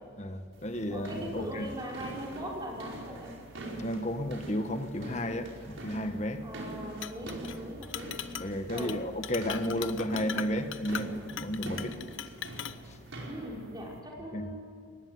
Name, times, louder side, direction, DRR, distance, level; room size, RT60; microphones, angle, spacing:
voice 1, 0.2-1.7 3.8-6.4 8.4-12.0 12.8-13.0 14.3-14.5, equal, 35° left, 8 dB, 1.4 m, -33 dB
sound 1, 0.5-14.0, right 1 dB, 85° right, 5.0 m, -44 dB
voice 2, 0.9-3.4 6.4-8.1 8.7-9.0 13.3-14.6, equal, 20° right, -2 dB, 5.3 m, -40 dB
Chink clink, 7.0-7.6 7.8-8.5 8.8-9.0 9.2-12.8, left 9 dB, 90° left, 0.8 m, -39 dB
23.0 x 19.5 x 9.6 m, 2.2 s
head